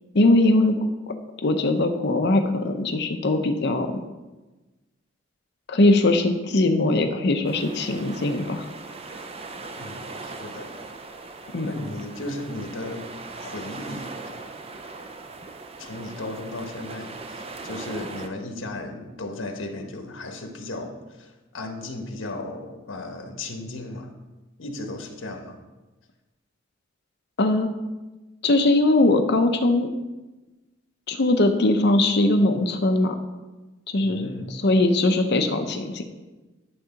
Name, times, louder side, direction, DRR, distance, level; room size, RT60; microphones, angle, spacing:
voice 1, 0.1-0.8 1.4-4.0 5.7-8.7 11.5-11.7 27.4-27.7 28.4-29.9 31.1-33.2 33.9-36.0, left 2 dB, 60° left, 6 dB, 0.7 m, -21 dB
sound 1, 7.4-18.3, right 3 dB, 30° right, 0.6 m, -39 dB
voice 2, 9.7-10.8 11.7-13.1 13.4-14.1 15.8-24.1 24.6-25.6 34.0-34.5, left 2 dB, 80° left, 4 dB, 1.2 m, -35 dB
11.0 x 3.9 x 5.8 m, 1.1 s
head